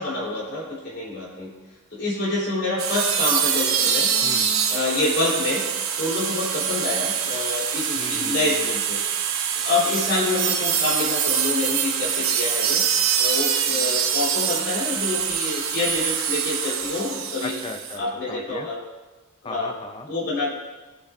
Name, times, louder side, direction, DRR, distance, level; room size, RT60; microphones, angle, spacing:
voice 1, 0.0-1.5 1.9-4.1 4.7-5.6 6.0-9.0 9.6-12.8 13.2-17.5 18.0-18.8 19.4-19.7 20.1-20.5, left 2 dB, 50° left, -6 dB, 3.4 m, -27 dB
sound 1, 2.8-18.0, right 8 dB, 70° right, 0.9 m, -24 dB
voice 2, 4.2-4.5 8.0-8.7 17.4-18.0 18.3-18.7 19.4-20.1, left 2 dB, 25° left, 6 dB, 0.5 m, -36 dB
15.5 x 7.0 x 2.5 m, 1.2 s
head